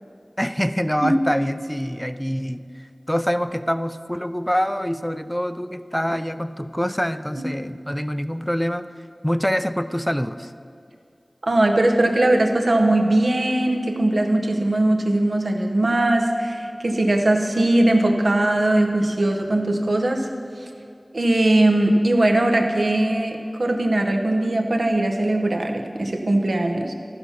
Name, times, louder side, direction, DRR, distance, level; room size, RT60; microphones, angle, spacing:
voice 1, 0.4-8.9 9.2-10.5, equal, 5° left, 12 dB, 0.4 m, -25 dB
voice 2, 11.4-20.3 21.1-26.9, right 1 dB, 75° right, 3 dB, 1.0 m, -20 dB
14.0 x 5.7 x 5.8 m, 2.5 s
wide cardioid pair, 40°, 0 cm